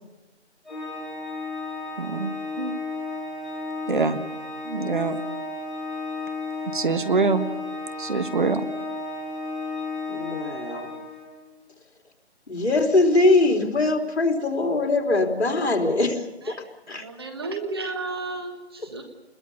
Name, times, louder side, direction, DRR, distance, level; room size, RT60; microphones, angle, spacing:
Organ, 0.7-11.4, left 3 dB, ahead, 7.5 m, -33 dB
voice 1, 2.0-2.8 3.9-4.2 4.6-5.2 6.7-7.5 8.0-8.6, right 4 dB, 45° right, 10 dB, 1.5 m, -24 dB
voice 2, 10.1-10.9 12.5-16.6 16.9-17.0, left 2 dB, 65° left, 3 dB, 3.8 m, -22 dB
voice 3, 16.9-19.1, right 3 dB, 20° right, 5 dB, 1.5 m, -33 dB
28.0 x 21.5 x 5.6 m, 0.99 s
figure-of-eight pair, 170°, 34 cm